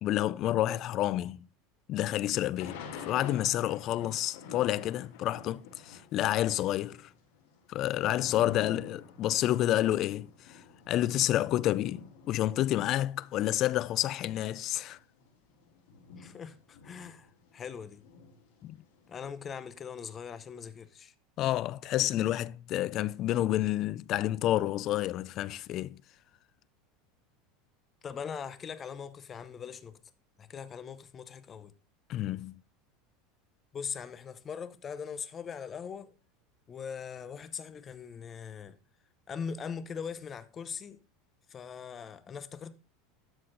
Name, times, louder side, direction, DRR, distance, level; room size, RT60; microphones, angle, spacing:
voice 1, 0.0-1.5 1.9-7.1 7.7-15.0 18.6-18.8 21.4-26.0 32.1-32.6, left 13 dB, 40° left, 0.3 m, -29 dB
Thunder / Rain, 2.6-6.2 6.5-13.6 14.2-14.3 14.5-17.6 18.0-19.7, left 6 dB, 85° left, 3.6 m, -48 dB
voice 2, 16.2-18.0 19.1-21.1 28.0-30.0 30.4-31.7 33.7-36.1 36.7-38.8 39.3-41.0 41.5-42.7, left 6 dB, 25° left, 0.7 m, -41 dB
12.5 x 4.2 x 3.9 m
supercardioid pair, 140°, 0 cm